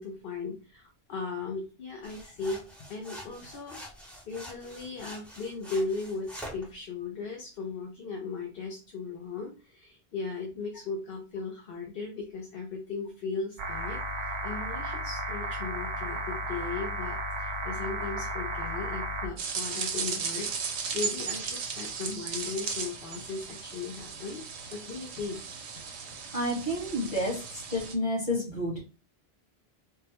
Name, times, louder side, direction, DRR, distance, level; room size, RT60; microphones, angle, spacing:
voice 1, 0.0-2.6 2.9-3.8 4.3-24.4 24.7-25.4, left 4 dB, 65° left, 2 dB, 0.8 m, -37 dB
sound 1, 2.0-6.7, equal, ahead, 0.6 m, -45 dB
sound 2, 13.6-19.3, right 1 dB, 55° right, 0.6 m, -34 dB
sound 3, 19.4-27.9, right 6 dB, 85° right, 0.9 m, -36 dB
voice 2, 26.3-28.8, left 1 dB, 50° left, -5 dB, 1.9 m, -30 dB
3.6 x 2.1 x 2.9 m, 0.33 s
omnidirectional pair, 1.1 m